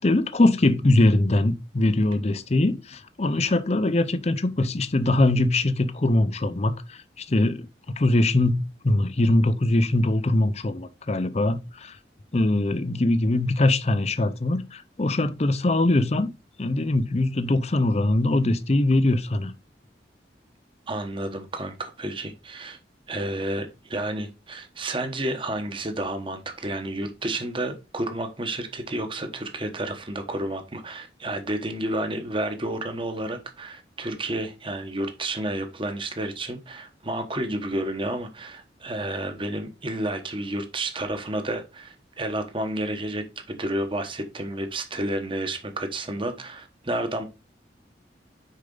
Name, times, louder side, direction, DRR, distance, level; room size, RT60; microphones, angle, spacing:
voice 1, 0.0-12.0 12.3-16.3 16.6-19.5, left 2 dB, 35° left, 0.6 m, -22 dB
voice 2, 20.9-22.8 23.1-47.2, right 1 dB, 30° right, 1.1 m, -31 dB
6.6 x 4.8 x 3.8 m
head